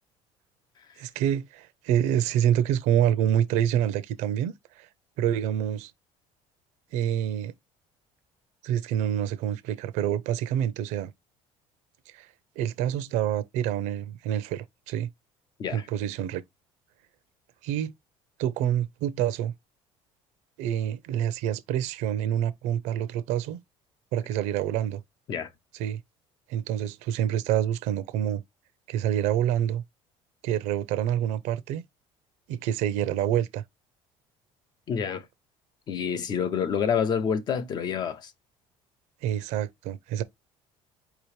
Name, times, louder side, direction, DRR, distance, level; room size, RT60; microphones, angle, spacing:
voice 1, 1.0-4.9 5.2-5.9 6.9-7.5 8.6-11.1 12.1-12.3 12.6-15.1 15.7-16.4 17.6-17.9 18.4-19.5 20.6-23.6 24.1-25.0 25.8-26.0 26.5-28.4 28.9-29.8 30.4-31.8 32.5-33.6 39.2-40.2, right 10 dB, 75° right, 0.7 m, -27 dB
voice 2, 34.9-35.3 35.9-38.3, left 7 dB, 35° left, 0.6 m, -28 dB
4.8 x 3.0 x 3.2 m
cardioid pair, 160°, 12 cm